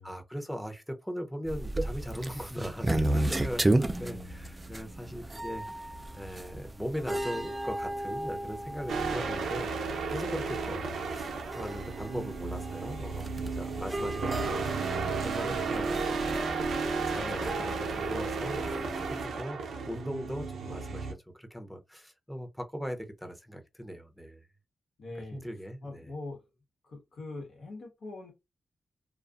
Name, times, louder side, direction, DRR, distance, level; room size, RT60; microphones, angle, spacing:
voice 1, 0.0-9.7 10.1-16.4 16.9-24.4 25.3-26.1, equal, 5° left, 0.7 m, -39 dB
sound 1, 1.5-19.3, right 1 dB, 25° right, 0.3 m, -34 dB
voice 2, 3.9-4.5 10.7-11.1 14.1-14.7 20.6-21.0 25.0-25.4 25.8-26.4 26.8-28.3, left 3 dB, 75° left, 1.3 m, -44 dB
sound 2, 8.9-21.1, right 4 dB, 85° right, 0.5 m, -33 dB
2.4 x 2.3 x 2.4 m
cardioid pair, 60°, 0 cm